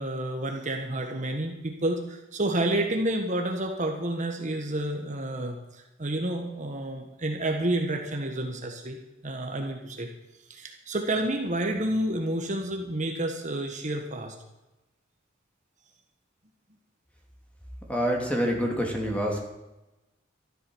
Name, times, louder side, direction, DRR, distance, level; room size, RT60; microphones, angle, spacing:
voice 1, 0.0-9.0 9.2-10.1 10.5-14.3, right 1 dB, 40° right, 3 dB, 1.4 m, -29 dB
voice 2, 17.9-19.4, equal, 5° left, 1 dB, 2.6 m, -26 dB
13.0 x 11.5 x 6.3 m, 0.99 s
head